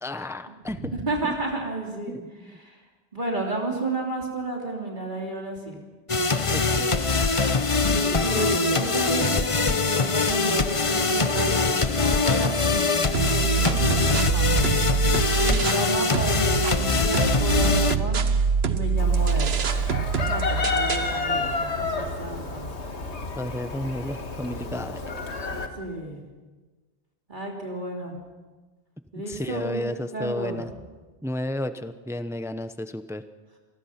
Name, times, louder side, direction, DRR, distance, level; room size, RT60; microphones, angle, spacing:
voice 1, 0.0-0.9 1.2-1.3 2.1-2.6 6.5-7.0 23.4-25.0 29.3-30.7 31.2-33.2, left 1 dB, 5° right, 10 dB, 0.7 m, -32 dB
voice 2, 0.8-2.1 2.6-2.8 3.1-5.8 7.8-14.8 15.1-18.2 18.7-19.5 20.3-22.7 25.8-26.2 27.3-28.2 29.1-29.8 30.1-30.6, right 2 dB, 45° right, -1 dB, 3.2 m, -32 dB
sound 1, 6.1-18.0, left 4 dB, 30° left, 0.9 m, -23 dB
sound 2, 13.1-15.9 16.1-21.1, right 6 dB, 70° right, 1.2 m, -25 dB
Chicken rooster, 19.0-25.7, left 3 dB, 80° left, 2.1 m, -30 dB
27.0 x 20.0 x 5.8 m, 1.3 s
omnidirectional pair, 1.1 m